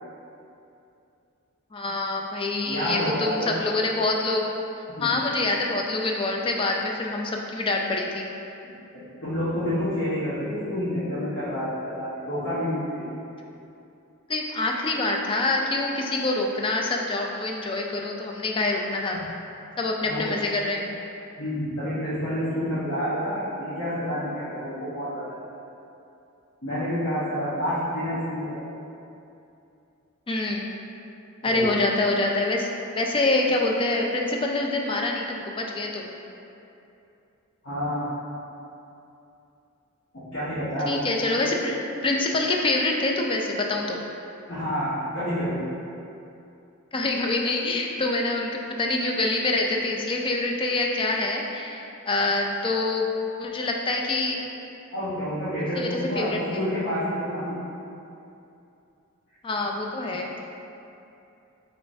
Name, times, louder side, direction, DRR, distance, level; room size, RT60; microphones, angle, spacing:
voice 1, 1.7-4.5 5.0-8.3 14.3-19.2 19.8-20.9 30.3-30.7 31.4-32.7 33.0-36.1 40.9-44.0 46.9-48.5 48.8-53.1 53.4-54.4 55.8-56.6 59.4-60.3, left 2 dB, 25° left, 1 dB, 0.3 m, -26 dB
voice 2, 2.6-3.5 5.0-5.1 8.9-13.0 19.1-19.2 20.0-20.3 21.4-25.4 26.6-28.6 31.4-31.7 37.6-38.1 40.3-41.0 44.5-45.6 54.9-57.6, equal, 60° left, -15 dB, 1.2 m, -28 dB
6.3 x 3.1 x 2.7 m, 2.8 s
head